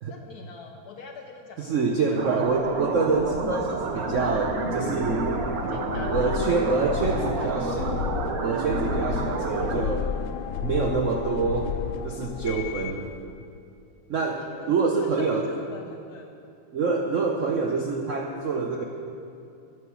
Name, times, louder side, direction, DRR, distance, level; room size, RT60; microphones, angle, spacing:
voice 1, 0.1-2.3 2.7-2.8 5.7-6.4 7.0-7.7 9.5-9.9 14.4-16.3, left 4 dB, 65° left, 3 dB, 0.9 m, -44 dB
voice 2, 1.6-5.4 6.1-8.0 8.4-10.1 10.6-11.7 12.0-13.1 14.1-15.4 16.7-18.8, right 4 dB, 85° right, 1 dB, 0.6 m, -26 dB
sound 1, 2.2-9.8, right 5 dB, 65° right, 1.0 m, -30 dB
sound 2, 2.5-13.1, left 8 dB, 90° left, 1.5 m, -33 dB
9.9 x 7.7 x 7.1 m, 2.7 s
omnidirectional pair, 2.3 m